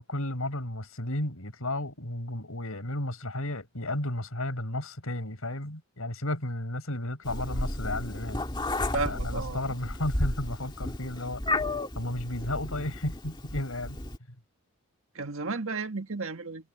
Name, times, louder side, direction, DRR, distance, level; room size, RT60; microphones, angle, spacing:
voice 1, 0.0-8.4 8.9-11.4 11.9-14.0, left 1 dB, 75° left, 4.9 m, -33 dB
Meow, 7.3-14.2, left 1 dB, 20° left, 2.5 m, -33 dB
voice 2, 8.9-9.8 15.2-16.7, right 4 dB, 70° right, 1.7 m, -33 dB
head